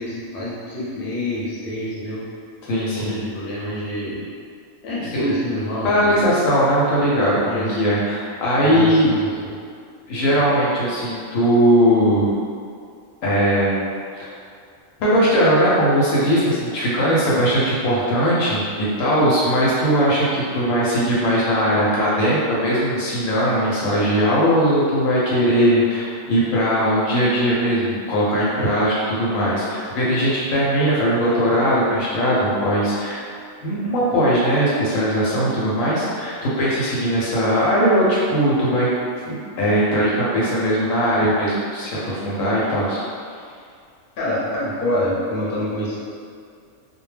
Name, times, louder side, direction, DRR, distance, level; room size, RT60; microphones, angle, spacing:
voice 1, 0.0-2.2 2.8-4.2 4.8-6.2 7.5-7.8 8.6-9.5 44.2-46.0, left 1 dB, 50° left, -8 dB, 0.8 m, -26 dB
voice 2, 2.6-3.1 5.1-5.2 5.8-9.1 10.1-12.3 13.2-13.9 14.2-14.3 15.0-33.3 33.6-38.9 39.3-43.0, equal, 75° left, -7 dB, 1.0 m, -19 dB
2.3 x 2.1 x 3.1 m, 2.3 s
omnidirectional pair, 1.4 m